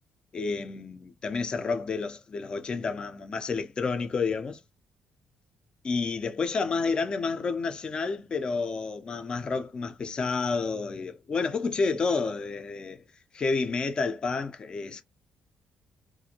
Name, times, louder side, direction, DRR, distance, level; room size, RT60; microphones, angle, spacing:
voice 1, 0.3-4.6 5.8-13.0 13.3-15.0, left 4 dB, 35° left, 0.4 m, -30 dB
2.4 x 2.0 x 2.7 m
cardioid pair, 130°, 3 cm